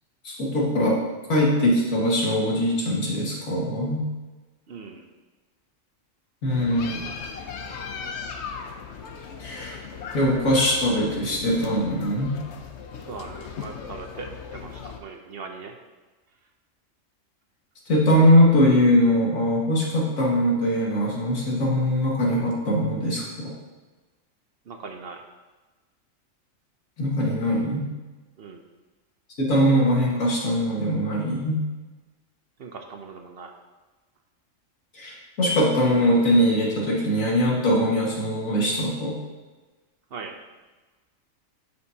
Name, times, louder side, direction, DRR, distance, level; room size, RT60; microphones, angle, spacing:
voice 1, 0.2-1.0 1.3-4.0 6.4-7.0 9.4-9.8 10.1-12.3 17.9-23.5 27.0-27.8 29.4-31.6 34.9-39.2, equal, 90° left, -3 dB, 2.1 m, -21 dB
voice 2, 4.7-5.1 13.1-15.8 24.7-25.2 28.4-28.6 32.6-33.5 40.1-40.3, right 4 dB, 55° right, 4 dB, 0.8 m, -39 dB
sound 1, 6.5-15.0, left 6 dB, 60° left, 0.9 m, -38 dB
11.0 x 5.3 x 2.8 m, 1.2 s
omnidirectional pair, 1.4 m